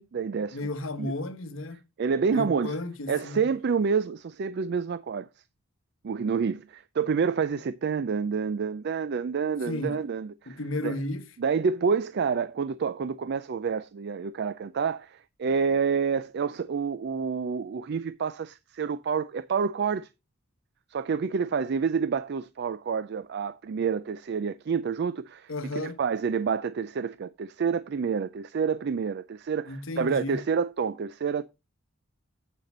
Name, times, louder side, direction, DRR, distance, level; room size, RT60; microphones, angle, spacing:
voice 1, 0.0-0.7 1.0-1.1 2.0-2.7 3.1-5.3 6.0-11.0 11.4-20.1 20.9-31.4, right 6 dB, 50° right, 0.4 m, -28 dB
voice 2, 0.5-1.8 2.3-3.5 9.6-10.0 10.5-11.3 25.5-26.0 29.7-30.4, left 2 dB, 70° left, 1.2 m, -33 dB
8.3 x 6.5 x 4.2 m
head